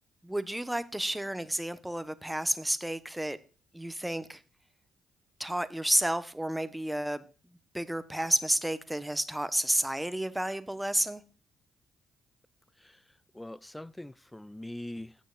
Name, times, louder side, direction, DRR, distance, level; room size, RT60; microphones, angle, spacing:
voice 1, 0.2-3.4 3.7-4.4 5.4-7.2 7.7-11.2, right 1 dB, 5° right, 1.1 m, -31 dB
voice 2, 13.3-15.3, left 1 dB, 10° left, 0.4 m, -43 dB
17.5 x 6.5 x 2.5 m
hypercardioid pair, 45°, 0 cm